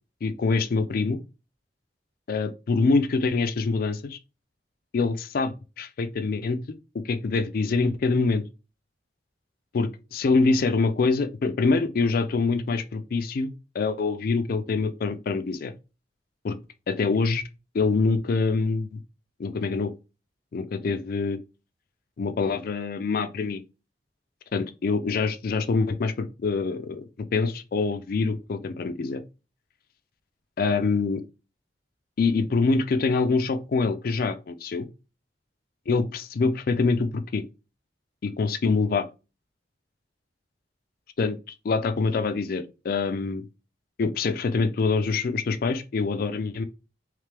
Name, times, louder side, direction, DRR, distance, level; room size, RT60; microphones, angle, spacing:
voice 1, 0.2-1.2 2.3-4.2 4.9-6.6 6.9-8.4 9.7-15.7 16.4-16.6 16.9-17.4 17.7-19.0 19.4-19.9 20.5-21.4 22.2-23.6 24.5-27.0 27.3-29.2 30.6-31.2 32.2-34.9 35.9-37.4 38.2-39.0 41.2-43.4 44.0-46.6, left 4 dB, 55° left, 0.4 m, -25 dB
3.3 x 3.2 x 3.3 m
head